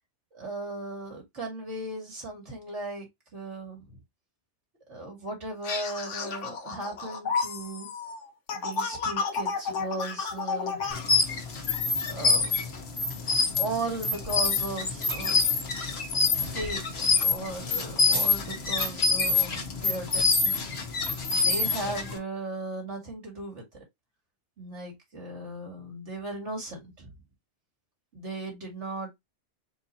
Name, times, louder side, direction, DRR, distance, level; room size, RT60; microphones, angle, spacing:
voice 1, 0.3-3.1 3.3-3.9 4.9-7.9 8.5-11.0 12.1-12.5 13.6-15.4 16.3-20.6 21.4-23.6 24.6-27.1 28.1-29.1, right 2 dB, 75° right, 2.4 m, -37 dB
sound 1, 5.6-11.0, left 5 dB, 85° left, 1.3 m, -32 dB
sound 2, 10.9-22.2, left 4 dB, 60° left, 1.4 m, -26 dB
4.5 x 2.8 x 4.1 m
omnidirectional pair, 1.2 m